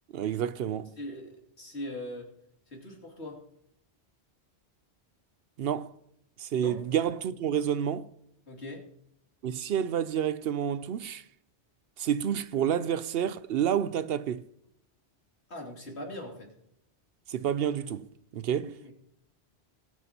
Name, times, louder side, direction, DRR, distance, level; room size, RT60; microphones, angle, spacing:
voice 1, 0.1-0.9 5.6-5.9 6.4-8.1 9.4-11.2 12.0-14.4 17.3-18.9, right 9 dB, 70° right, 0.8 m, -29 dB
voice 2, 1.0-2.3 2.7-3.4 6.6-6.8 8.5-8.8 15.5-16.5 18.6-18.9, left 1 dB, 75° left, 3.0 m, -41 dB
20.5 x 8.2 x 2.9 m
omnidirectional pair, 1.1 m